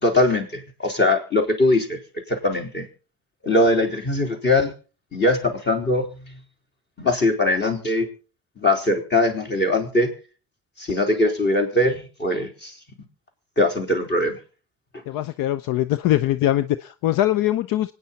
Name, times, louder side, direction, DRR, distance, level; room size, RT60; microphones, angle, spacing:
voice 1, 0.0-2.0 2.3-2.9 3.4-4.7 5.1-6.4 7.0-8.1 8.6-10.1 10.8-12.7 13.6-14.4, left 2 dB, 30° left, 3 dB, 4.0 m, -21 dB
voice 2, 15.1-17.9, left 13 dB, 70° left, 13 dB, 0.7 m, -22 dB
25.0 x 9.5 x 4.1 m, 0.36 s
cardioid pair, 110°, 35 cm